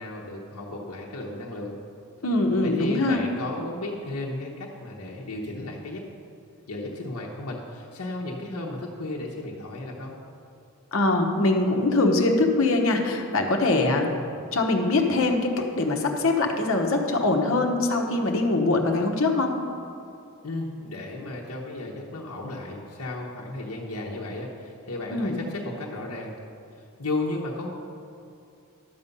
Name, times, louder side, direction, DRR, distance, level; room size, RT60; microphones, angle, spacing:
voice 1, 0.0-1.8 2.6-6.0 6.7-10.1 14.2-14.4 20.4-26.3 27.0-27.7, left 2 dB, 90° left, -3 dB, 1.0 m, -34 dB
voice 2, 2.2-3.2 10.9-14.1 14.5-19.6 25.1-25.4, left 2 dB, 70° left, 2 dB, 1.1 m, -23 dB
11.5 x 7.0 x 5.4 m, 2.7 s
head